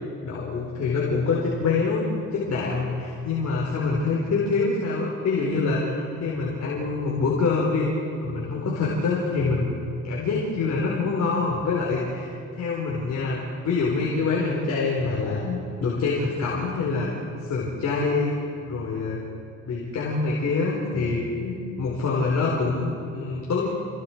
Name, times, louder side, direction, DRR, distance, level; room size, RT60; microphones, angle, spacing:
voice 1, 0.2-2.1 2.3-7.9 8.2-9.7 10.0-17.1 17.5-18.4 18.7-19.2 19.7-23.7, left 4 dB, 65° left, -4 dB, 4.3 m, -25 dB
28.5 x 20.0 x 4.6 m, 2.5 s
cardioid pair, 90°, 30 cm